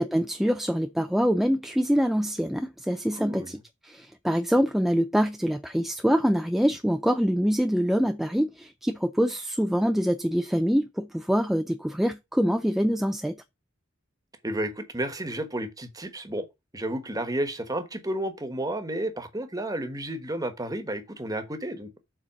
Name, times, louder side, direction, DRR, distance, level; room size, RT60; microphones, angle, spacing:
voice 1, 0.0-3.4 3.8-13.4, equal, ahead, 0.4 m, -25 dB
voice 2, 3.1-3.6 14.4-16.5 16.7-22.0, right 1 dB, 20° right, 1.3 m, -32 dB
7.3 x 4.1 x 6.2 m
head